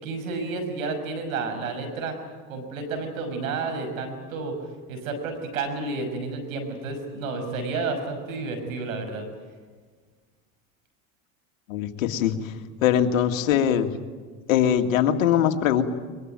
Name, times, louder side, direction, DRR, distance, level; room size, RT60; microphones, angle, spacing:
voice 1, 0.0-2.1 2.5-4.5 4.9-9.3, right 3 dB, 85° right, 6 dB, 6.1 m, -31 dB
voice 2, 11.7-12.5 12.8-13.9 14.5-15.8, left 9 dB, 85° left, 6 dB, 2.1 m, -22 dB
22.5 x 22.5 x 9.3 m, 1.5 s
hypercardioid pair, 90°, 40 cm